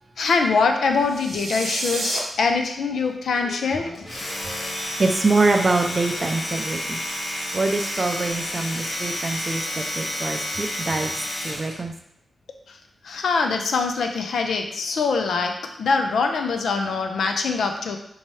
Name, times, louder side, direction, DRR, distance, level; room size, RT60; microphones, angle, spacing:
voice 1, 0.2-4.1 12.7-12.8 13.0-18.0, left 4 dB, 85° left, 4 dB, 0.5 m, -23 dB
sound 1, 1.0-2.2, right 2 dB, 80° right, 0.8 m, -29 dB
Domestic sounds home sounds, 3.9-11.8, left 1 dB, 55° left, 1.1 m, -30 dB
voice 2, 5.0-7.0 7.5-9.6 10.0-11.1 11.4-11.9, right 3 dB, 30° right, 4 dB, 0.4 m, -24 dB
4.5 x 2.8 x 3.1 m, 0.76 s
wide cardioid pair, 135°, 0 cm